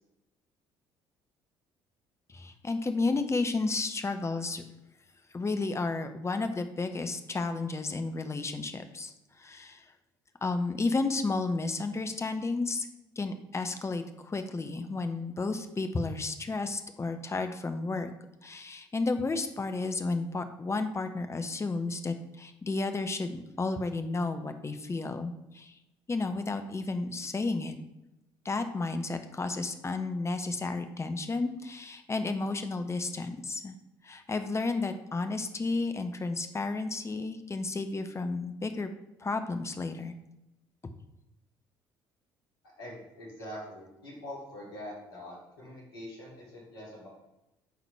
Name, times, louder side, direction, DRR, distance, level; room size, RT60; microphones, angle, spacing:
voice 1, 2.3-4.6 5.3-9.9 10.4-12.9 13.2-18.1 18.4-25.7 26.1-27.8 28.4-33.7 34.0-38.9 39.2-40.1, left 3 dB, 20° left, 8 dB, 0.8 m, -32 dB
voice 2, 42.8-47.1, left 1 dB, 80° left, -6 dB, 2.9 m, -44 dB
11.5 x 4.1 x 3.4 m, 0.92 s
figure-of-eight pair, 55°, 13 cm